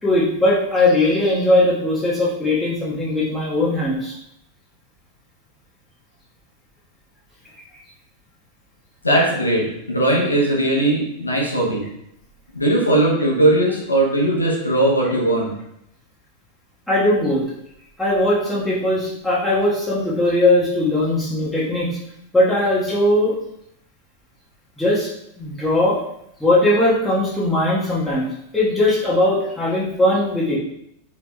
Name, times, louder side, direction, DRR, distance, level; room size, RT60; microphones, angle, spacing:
voice 1, 0.0-4.2 16.9-17.4 18.0-22.0 22.3-23.4 24.8-25.1 25.4-26.0 26.4-28.3 28.5-30.6, left 1 dB, 5° left, -7 dB, 1.3 m, -19 dB
voice 2, 9.0-11.9 12.5-15.5, right 1 dB, 80° left, -3 dB, 0.9 m, -19 dB
4.7 x 3.2 x 2.2 m, 0.78 s
figure-of-eight pair, 90°, 0 cm